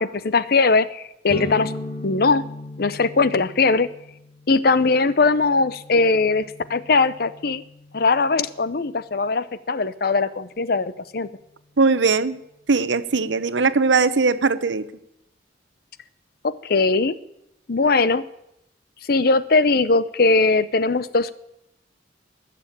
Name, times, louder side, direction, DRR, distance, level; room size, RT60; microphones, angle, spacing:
voice 1, 0.0-1.7 2.0-2.4 2.8-3.9 4.5-7.6 7.9-11.3 16.4-17.2 17.7-18.2 19.1-21.3, left 3 dB, 55° left, 16 dB, 0.7 m, -20 dB
sound 1, 1.3-8.9, left 1 dB, 30° left, 2.1 m, -38 dB
voice 2, 11.8-12.4 12.7-14.9, right 4 dB, 90° right, 14 dB, 0.9 m, -20 dB
20.0 x 7.0 x 8.8 m, 0.83 s
head